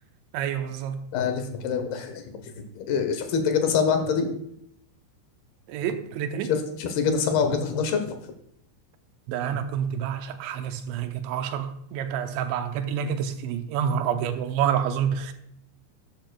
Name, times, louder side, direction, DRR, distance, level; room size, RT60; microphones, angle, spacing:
voice 1, 0.3-1.0 5.7-6.5 9.3-15.3, right 8 dB, 85° right, 3.0 m, -28 dB
voice 2, 1.1-2.4 2.8-4.3 6.5-8.2, left 6 dB, 70° left, 2.6 m, -25 dB
13.0 x 8.8 x 2.3 m
omnidirectional pair, 5.3 m